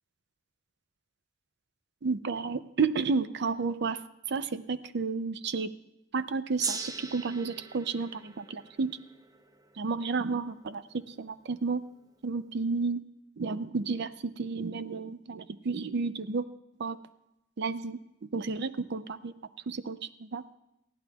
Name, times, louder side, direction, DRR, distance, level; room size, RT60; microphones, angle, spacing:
voice 1, 2.0-4.0 4.3-5.7 6.1-9.0 9.8-11.8 12.2-13.0 13.4-16.5 16.8-17.0 17.6-18.0 18.3-19.3 19.7-20.4, right 4 dB, 60° right, 13 dB, 0.5 m, -31 dB
Gong, 6.6-11.3, right 3 dB, 20° right, 0.7 m, -40 dB
20.0 x 14.5 x 2.3 m, 0.86 s
head